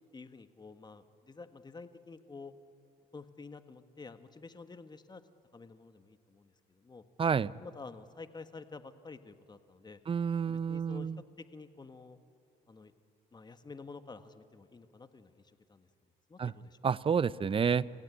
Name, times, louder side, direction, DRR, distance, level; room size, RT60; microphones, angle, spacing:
voice 1, 0.1-2.5 3.1-5.2 5.5-7.0 7.6-10.0 10.5-11.1 11.4-12.2 12.7-12.9 13.3-15.4 15.7-15.9 16.3-16.8, left 4 dB, 25° left, 10 dB, 1.6 m, -50 dB
voice 2, 7.2-7.5 10.1-11.2 16.4-16.5 16.8-17.8, right 6 dB, 30° right, 19 dB, 0.6 m, -29 dB
26.5 x 16.5 x 9.9 m, 2.4 s
supercardioid pair, 75°, 17 cm